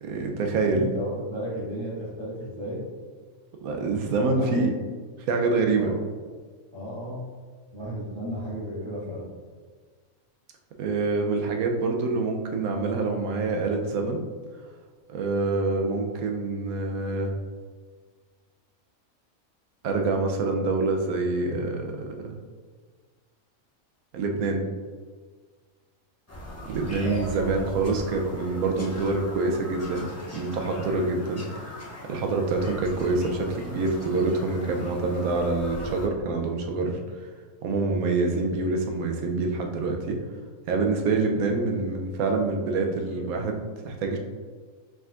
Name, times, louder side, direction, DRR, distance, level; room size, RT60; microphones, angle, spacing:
voice 1, 0.0-0.9 3.6-4.7 5.3-5.9 10.8-14.2 15.1-17.3 19.8-22.4 24.1-24.6 26.6-31.8 32.0-37.0 37.6-40.2 40.7-44.2, right 3 dB, 85° right, 3 dB, 1.1 m, -26 dB
voice 2, 0.5-2.9 4.2-4.9 5.8-6.0 6.7-7.3 7.7-9.3 27.0-27.3, equal, 20° right, -9 dB, 1.5 m, -34 dB
Bird vocalization bird call bird song, 26.3-36.1, left 1 dB, 20° left, 0.4 m, -40 dB
4.9 x 3.6 x 2.4 m, 1.5 s
omnidirectional pair, 1.5 m